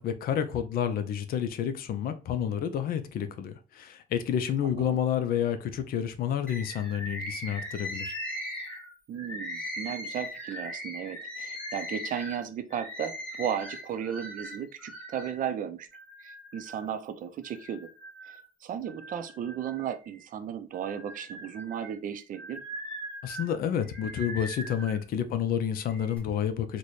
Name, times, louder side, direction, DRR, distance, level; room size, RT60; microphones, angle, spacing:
voice 1, 0.0-8.1 23.2-26.8, left 9 dB, 60° left, 0.5 m, -29 dB
voice 2, 4.6-5.0 9.1-15.9 16.2-17.9 18.2-22.6, right 9 dB, 55° right, 0.5 m, -35 dB
Bird, 6.5-15.4 15.9-16.9 17.4-18.4 18.9-20.3 20.7-25.0 25.7-26.2, equal, 5° left, 1.5 m, -40 dB
4.0 x 2.2 x 3.1 m
cardioid pair, 110°, 17 cm